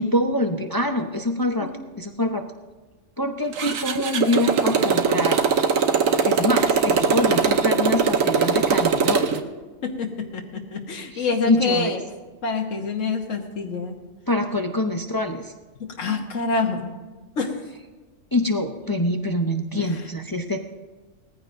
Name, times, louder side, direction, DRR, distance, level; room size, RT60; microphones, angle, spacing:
voice 1, 0.0-1.7 2.0-2.4 3.2-5.4 6.2-9.3 11.1-12.0 14.3-15.5 18.3-20.6, left 1 dB, 25° left, 4 dB, 0.5 m, -25 dB
Motorcycle, 3.5-9.4, right 6 dB, 85° right, 1.3 m, -21 dB
voice 2, 9.8-12.0 12.4-14.0 15.8-16.9 17.4-17.5 19.7-20.1, left 4 dB, 70° left, 0 dB, 1.6 m, -27 dB
19.5 x 14.5 x 2.6 m, 1.3 s
omnidirectional pair, 1.3 m